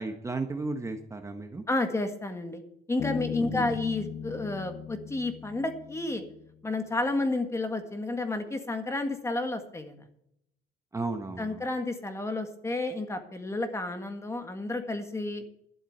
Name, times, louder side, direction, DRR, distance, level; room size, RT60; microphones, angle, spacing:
voice 1, 0.0-1.6 3.5-3.7 10.9-11.6, right 3 dB, 15° right, 6 dB, 1.2 m, -34 dB
voice 2, 1.7-2.6 2.9-6.2 6.6-10.1 11.4-15.4, left 2 dB, 15° left, 7 dB, 1.8 m, -31 dB
Bass guitar, 3.0-6.5, left 9 dB, 50° left, 0.6 m, -38 dB
12.0 x 7.4 x 8.0 m, 0.75 s
cardioid pair, 110°, 17 cm